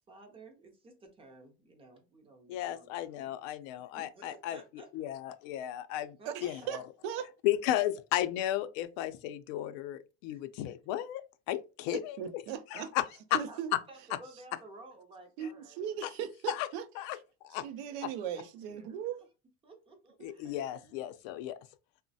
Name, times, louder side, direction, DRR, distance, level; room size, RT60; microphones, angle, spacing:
voice 1, 0.1-3.5 3.9-5.1 6.2-6.7 10.3-10.4 13.5-13.6 13.9-15.8 17.9-18.0 18.3-18.9 19.2-19.3 19.6-20.6, right 2 dB, 15° right, 0.5 m, -54 dB
voice 2, 2.5-4.6 4.9-6.2 6.4-6.8 7.4-11.2 11.5-12.2 12.7-13.0 13.3-13.4 16.0-16.1 16.5-16.7 17.0-17.2 17.4-17.6 20.2-21.6, left 13 dB, 80° left, 0.5 m, -34 dB
voice 3, 6.3-7.3 11.9-12.9 13.3-13.7 15.4-16.9 17.6-19.2 20.2-20.6, right 9 dB, 80° right, 0.5 m, -38 dB
3.0 x 2.1 x 2.6 m
cardioid pair, 160°, 36 cm